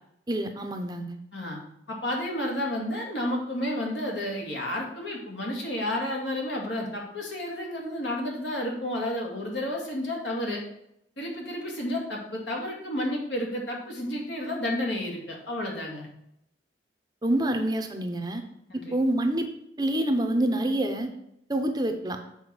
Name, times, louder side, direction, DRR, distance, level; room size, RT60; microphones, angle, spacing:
voice 1, 0.3-1.2 17.2-18.4 18.9-19.5 19.8-21.1 21.5-22.2, right 1 dB, 20° right, 6 dB, 0.7 m, -26 dB
voice 2, 1.9-10.6 11.2-16.1 18.7-18.9, left 1 dB, 75° left, -1 dB, 2.2 m, -31 dB
7.2 x 4.7 x 6.0 m, 0.78 s
head